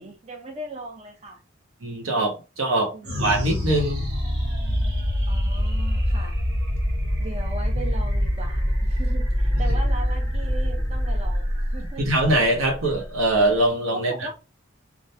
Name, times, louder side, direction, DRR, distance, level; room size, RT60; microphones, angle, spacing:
voice 1, 0.0-1.4 2.9-3.1 5.3-6.4 7.2-12.1 13.9-14.3, right 2 dB, 30° right, 0.5 m, -38 dB
voice 2, 1.8-2.9 3.2-4.1 12.0-14.1, right 1 dB, 80° right, 0.9 m, -22 dB
sound 1, 3.0-13.7, equal, 55° right, 1.0 m, -25 dB
3.3 x 2.0 x 2.7 m
head